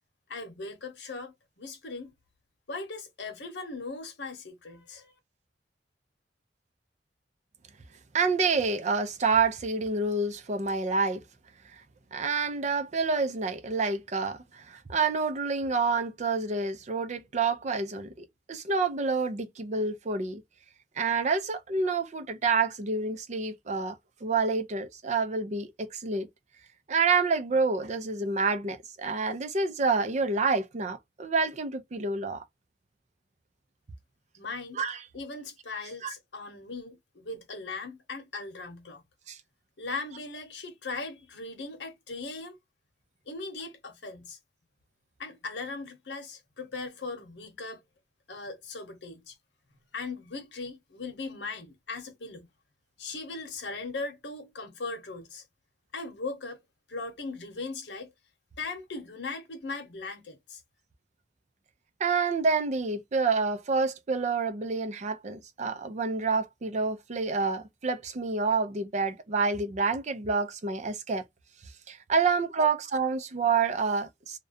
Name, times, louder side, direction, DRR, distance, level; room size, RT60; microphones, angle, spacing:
voice 1, 0.3-2.1 2.7-5.1 34.4-34.8 35.1-39.0 39.8-42.6 43.3-44.4 45.2-47.8 48.3-49.4 49.9-52.5 53.0-55.4 55.9-56.6 56.9-58.1 58.6-60.6, left 3 dB, 75° left, 0.9 m, -39 dB
voice 2, 8.1-11.2 11.7-11.8 12.1-20.4 21.0-26.3 26.9-32.4 34.8-35.0 36.0-36.1 39.3-39.4 62.0-71.2 71.9-74.4, right 4 dB, 40° right, 0.5 m, -28 dB
2.4 x 2.1 x 2.5 m
head